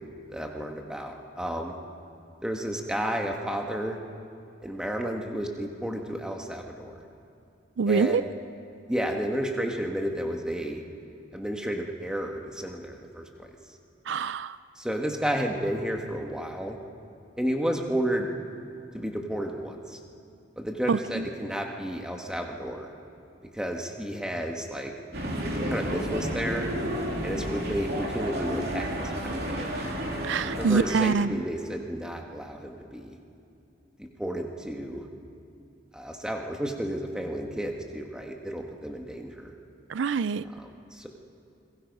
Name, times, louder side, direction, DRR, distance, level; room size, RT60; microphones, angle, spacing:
voice 1, 0.3-1.8 2.4-4.0 4.6-6.9 7.9-8.3 8.9-10.8 11.3-13.5 14.7-16.8 17.4-18.3 18.9-20.0 20.6-22.9 23.5-24.9 25.6-26.7 27.2-29.8 30.6-33.2 34.0-35.1 35.9-39.5 40.5-41.1, equal, 5° right, 2 dB, 1.6 m, -32 dB
voice 2, 7.8-8.2 14.1-14.6 20.9-21.2 30.2-31.3 39.9-40.4, right 5 dB, 80° right, 16 dB, 0.4 m, -25 dB
sound 1, 25.1-30.9, equal, 55° right, 3.1 m, -31 dB
28.0 x 21.5 x 5.4 m, 2.6 s
head